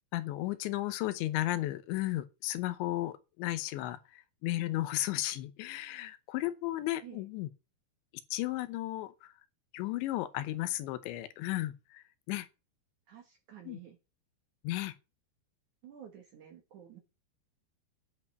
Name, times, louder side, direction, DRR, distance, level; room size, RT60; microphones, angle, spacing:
voice 1, 0.1-7.5 8.3-9.3 9.7-12.5 13.7-13.8 14.6-14.9, left 16 dB, 80° left, 3.1 m, -34 dB
voice 2, 13.1-14.0 15.8-17.0, right 9 dB, 60° right, 2.2 m, -51 dB
11.0 x 7.6 x 6.6 m
omnidirectional pair, 5.3 m